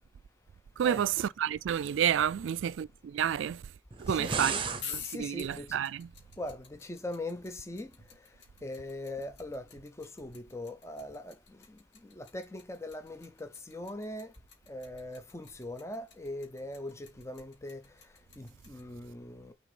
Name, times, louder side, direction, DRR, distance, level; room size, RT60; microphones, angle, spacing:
voice 1, 0.8-3.6 4.0-4.6 4.9-6.1, right 9 dB, 80° right, 0.3 m, -30 dB
sound 1, 3.9-4.9, right 5 dB, 25° right, 0.7 m, -33 dB
voice 2, 4.1-4.6 5.1-5.8 6.4-6.6 6.8-7.9 8.6-9.6 10.0-11.3 12.2-14.3 14.7-17.8 18.4-19.5, left 1 dB, 15° left, 0.6 m, -40 dB
sound 2, 4.7-18.8, left 7 dB, 65° left, 2.0 m, -47 dB
6.4 x 4.1 x 4.8 m
head